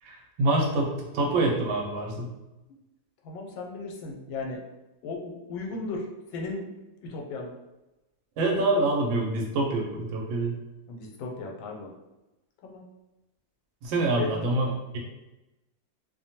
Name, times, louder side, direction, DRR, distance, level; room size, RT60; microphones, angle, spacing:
voice 1, 0.0-2.3 8.4-10.6 13.8-15.0, right 2 dB, 80° right, 0 dB, 1.4 m, -26 dB
voice 2, 3.2-4.6 5.0-6.0 6.3-6.7 7.0-7.5 10.9-11.9 12.6-12.8 14.2-14.5, left 3 dB, 85° left, 1 dB, 1.3 m, -35 dB
3.1 x 2.1 x 2.7 m, 1.0 s
omnidirectional pair, 2.1 m